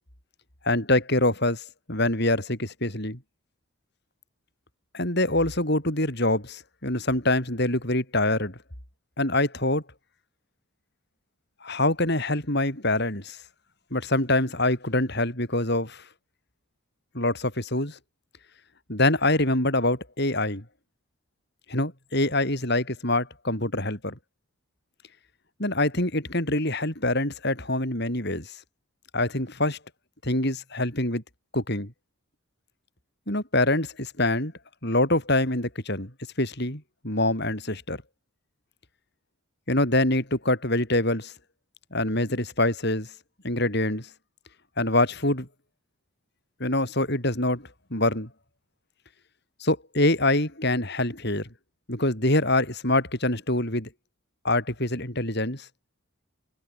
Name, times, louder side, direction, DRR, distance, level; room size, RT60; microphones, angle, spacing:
voice 1, 0.6-3.2 4.9-8.6 9.2-9.8 11.6-13.4 13.9-16.0 17.1-18.0 18.9-20.6 21.7-24.2 25.6-28.6 29.1-29.8 30.2-31.2 31.5-31.9 33.3-34.5 34.8-36.1 36.4-38.0 39.7-41.3 41.9-43.1 43.4-44.1 44.8-45.5 46.6-48.3 49.6-51.5 51.9-53.9 54.4-55.7, left 2 dB, 50° left, 6.8 m, -25 dB
head